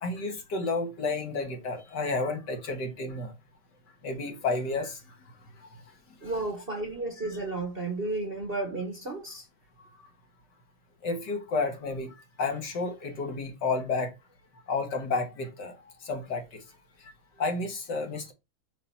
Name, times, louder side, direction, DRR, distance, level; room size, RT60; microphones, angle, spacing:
voice 1, 0.0-3.3 4.0-5.0 11.0-14.1 14.7-15.7 16.0-16.6 17.4-18.3, left 3 dB, 55° left, 2.0 m, -31 dB
voice 2, 6.2-9.4, right 2 dB, 30° right, 1.2 m, -33 dB
5.9 x 4.2 x 5.6 m
omnidirectional pair, 2.3 m